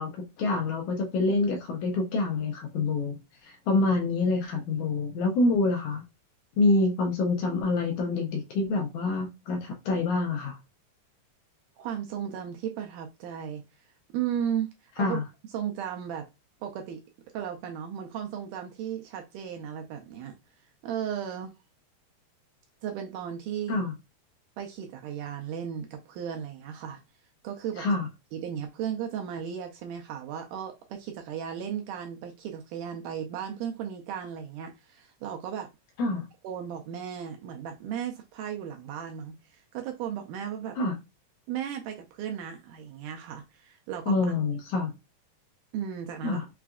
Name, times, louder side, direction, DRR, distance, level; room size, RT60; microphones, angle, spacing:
voice 1, 0.0-6.0 6.6-10.6 15.0-15.2 23.7-23.9 27.8-28.1 36.0-36.2 40.8-40.9 44.1-44.9 46.2-46.5, left 3 dB, 75° left, 2.0 m, -26 dB
voice 2, 11.8-13.6 14.1-15.2 15.5-16.3 16.6-17.0 17.3-20.4 20.8-21.6 22.8-23.8 24.6-27.0 27.4-27.9 28.3-35.7 36.4-40.8 41.5-44.2 45.7-46.4, right 9 dB, 80° right, 1.9 m, -35 dB
5.7 x 2.5 x 2.3 m
omnidirectional pair, 4.0 m